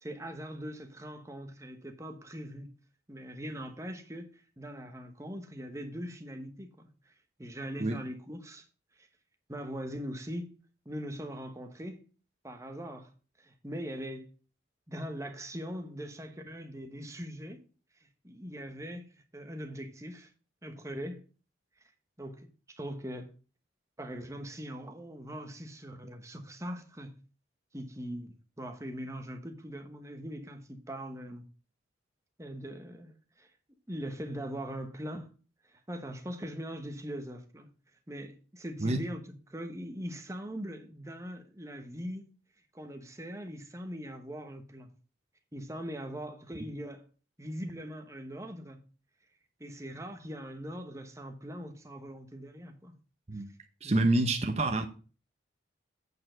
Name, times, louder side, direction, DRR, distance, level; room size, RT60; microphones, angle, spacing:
voice 1, 0.0-2.7 3.1-8.7 9.0-9.1 9.5-10.6 10.8-12.0 12.4-13.1 13.4-14.3 14.9-17.6 18.2-20.3 20.6-21.2 22.2-23.3 24.0-27.1 27.7-31.4 32.4-33.5 33.9-35.3 35.7-37.7 38.1-39.2 39.5-42.3 42.7-44.9 45.5-47.1 47.4-48.8 49.6-52.9 53.3-53.4 53.8-54.3, equal, 15° right, 1.1 m, -41 dB
voice 2, 53.8-54.9, right 2 dB, 35° right, 0.8 m, -27 dB
8.3 x 4.7 x 6.4 m
head